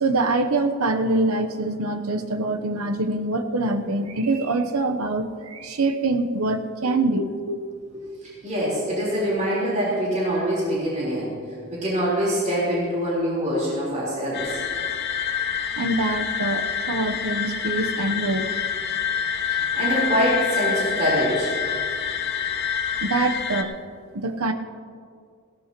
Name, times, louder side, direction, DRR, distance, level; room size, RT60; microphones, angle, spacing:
voice 1, 0.0-7.6 15.8-18.5 23.0-23.7 24.1-24.5, right 2 dB, 75° right, 7 dB, 0.9 m, -24 dB
voice 2, 7.9-11.3 11.7-14.6 19.7-21.6, equal, 35° right, -7 dB, 4.0 m, -24 dB
sound 1, 14.3-23.6, left 8 dB, 50° left, 1.0 m, -27 dB
18.0 x 17.0 x 3.0 m, 2.2 s
head